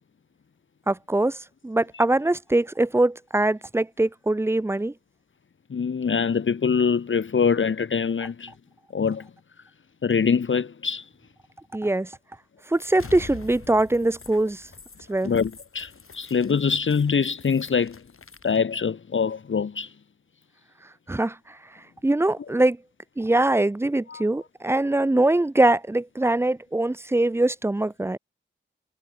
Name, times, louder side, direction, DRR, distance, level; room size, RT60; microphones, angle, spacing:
voice 1, 0.9-1.4 1.6-4.9 11.7-12.1 12.7-14.6 15.1-15.3 21.1-21.6 22.0-22.8 23.2-28.2, right 2 dB, 10° right, 0.4 m, -22 dB
voice 2, 5.7-8.5 8.9-9.3 10.0-11.1 15.2-18.0 18.4-19.9 24.1-24.3, left 6 dB, 65° left, 0.7 m, -24 dB
sound 1, 12.7-18.6, left 5 dB, 90° left, 3.3 m, -45 dB
cardioid pair, 40°, 21 cm